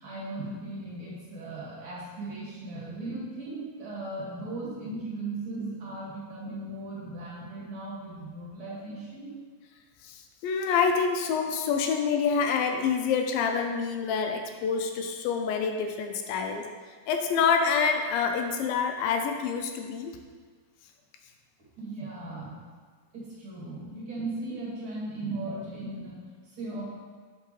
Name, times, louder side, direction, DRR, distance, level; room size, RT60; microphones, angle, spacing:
voice 1, 0.0-9.3 21.8-22.6 23.1-26.8, right 2 dB, 40° right, -6 dB, 2.3 m, -37 dB
voice 2, 10.4-16.6 17.1-20.1, left 6 dB, 85° left, 4 dB, 2.4 m, -27 dB
8.2 x 6.9 x 3.2 m, 1.5 s
omnidirectional pair, 4.2 m